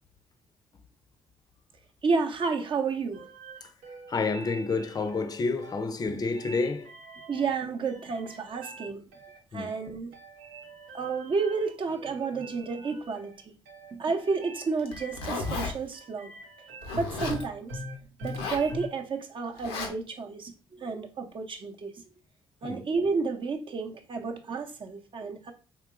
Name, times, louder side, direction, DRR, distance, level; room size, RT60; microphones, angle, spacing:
voice 1, 2.0-3.2 7.3-9.1 9.5-10.1 10.9-13.3 13.9-16.3 16.9-17.8 18.2-22.0 22.6-25.5, right 4 dB, 45° right, 0.6 m, -31 dB
sound 1, 3.1-18.9, equal, 85° right, 0.6 m, -44 dB
voice 2, 4.1-6.9 9.5-9.7 22.6-22.8, left 4 dB, 30° left, 0.5 m, -29 dB
Zipper (clothing), 14.8-15.7 16.8-17.4 18.2-18.7 19.6-19.9, left 3 dB, 90° left, 0.6 m, -33 dB
3.7 x 2.8 x 2.4 m
hypercardioid pair, 50°, 12 cm